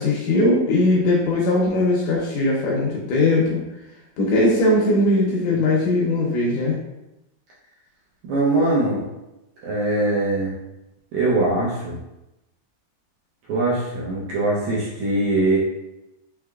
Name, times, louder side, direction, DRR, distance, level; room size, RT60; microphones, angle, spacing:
voice 1, 0.0-3.6 4.2-6.7, left 2 dB, 80° left, -3 dB, 1.9 m, -19 dB
voice 2, 8.3-9.0 9.6-10.5 11.1-12.0 13.5-15.6, right 2 dB, 75° right, -7 dB, 1.7 m, -22 dB
5.7 x 3.3 x 2.3 m, 0.92 s
omnidirectional pair, 4.4 m